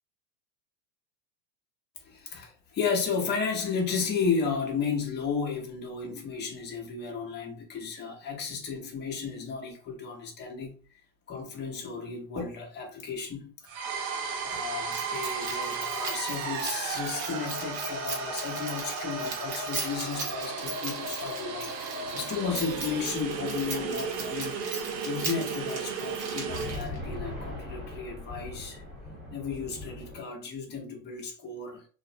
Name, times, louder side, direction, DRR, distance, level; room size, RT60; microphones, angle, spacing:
voice 1, 2.0-10.7 11.3-13.5 14.1-28.8 29.3-31.9, left 5 dB, 20° left, 0.6 m, -34 dB
sound 1, 13.7-26.8, right 5 dB, 80° right, 0.8 m, -34 dB
Keys jangling, 14.9-27.0, right 3 dB, 35° right, 1.0 m, -39 dB
sound 2, 22.5-25.2 25.5-25.6 26.2-30.2, left 1 dB, ahead, 1.0 m, -41 dB
2.5 x 2.0 x 2.6 m
supercardioid pair, 120°, 50 cm